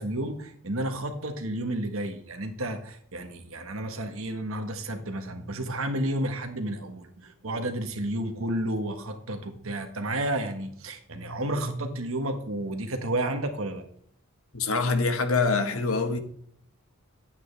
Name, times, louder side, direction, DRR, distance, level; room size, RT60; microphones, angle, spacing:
voice 1, 0.0-13.8, right 1 dB, 75° right, 1.6 m, -31 dB
voice 2, 14.5-16.2, left 4 dB, 80° left, 1.3 m, -25 dB
11.5 x 9.0 x 3.4 m
head